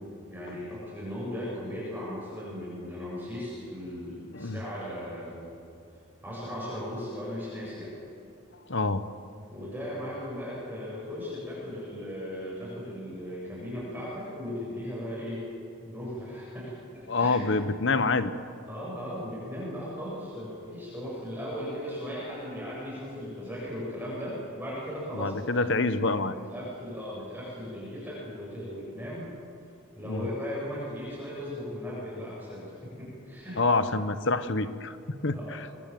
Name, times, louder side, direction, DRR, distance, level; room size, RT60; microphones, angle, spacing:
voice 1, 0.3-5.5 6.2-7.9 9.5-15.5 15.8-17.5 18.7-25.7 26.3-29.3 30.0-33.6 35.3-35.6, equal, 10° right, -7 dB, 7.9 m, -37 dB
voice 2, 8.7-9.1 17.1-18.3 25.1-26.3 30.1-30.3 33.6-35.0 35.2-35.7, left 3 dB, 60° left, 11 dB, 1.1 m, -27 dB
25.0 x 23.0 x 7.7 m, 2.5 s
head